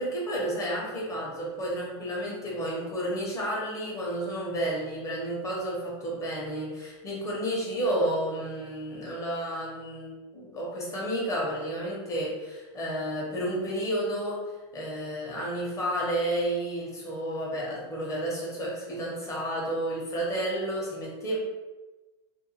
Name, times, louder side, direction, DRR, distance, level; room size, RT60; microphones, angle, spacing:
voice 1, 0.0-14.4 14.7-21.4, right 1 dB, 20° left, -4 dB, 0.9 m, -31 dB
2.6 x 2.2 x 2.8 m, 1.2 s
supercardioid pair, 130°, 15 cm